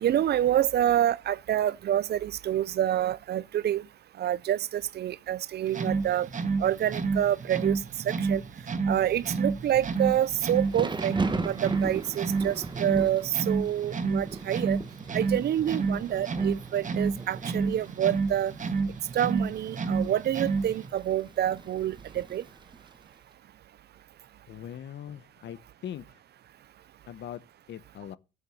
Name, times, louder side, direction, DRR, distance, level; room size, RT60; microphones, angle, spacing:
voice 1, 0.0-3.8 4.2-6.3 6.6-7.7 8.3-8.4 8.9-11.1 11.4-14.8 15.1-18.5 19.1-22.4, right 11 dB, 55° right, 0.5 m, -27 dB
sound 1, 5.7-20.9, right 4 dB, 40° right, 1.6 m, -30 dB
Thunder / Rain, 10.0-23.1, right 3 dB, 25° right, 1.3 m, -40 dB
voice 2, 24.5-26.0 27.1-27.4 27.7-28.2, left 10 dB, 65° left, 0.9 m, -40 dB
12.5 x 6.7 x 7.0 m
cardioid pair, 90°, 20 cm